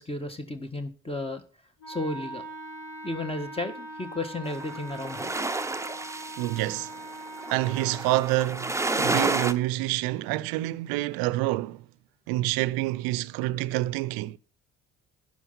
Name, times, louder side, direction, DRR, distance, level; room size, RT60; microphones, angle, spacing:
voice 1, 0.0-1.4 1.9-2.4 3.0-5.3, left 2 dB, 15° left, 1.6 m, -33 dB
Wind instrument woodwind instrument, 1.8-8.2, right 2 dB, 60° left, 3.9 m, -41 dB
sound 1, 4.5-9.5, right 2 dB, 10° right, 0.9 m, -30 dB
voice 2, 6.4-6.9 7.5-11.8 12.3-14.4, right 17 dB, 70° right, 0.7 m, -27 dB
11.0 x 5.9 x 5.8 m
hypercardioid pair, 45°, 38 cm